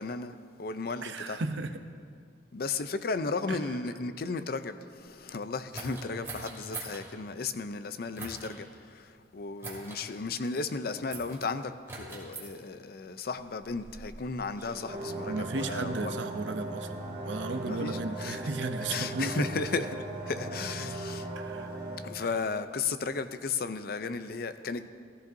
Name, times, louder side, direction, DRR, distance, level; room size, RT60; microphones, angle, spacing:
voice 1, 0.0-1.4 2.5-16.1 17.7-18.5 18.9-19.9 20.2-21.3 22.0-24.9, left 4 dB, 55° left, 0.5 m, -35 dB
voice 2, 1.0-1.7 3.5-3.6 15.2-19.5 21.4-21.7, right 3 dB, 85° right, 0.7 m, -35 dB
sound 1, 5.7-7.0 8.1-8.5 9.6-10.0 11.1-11.5 11.9-12.5 13.4-14.8, right 3 dB, 15° right, 2.2 m, -42 dB
sound 2, 14.9-22.0, right 2 dB, 35° right, 2.2 m, -38 dB
16.0 x 14.5 x 2.7 m
head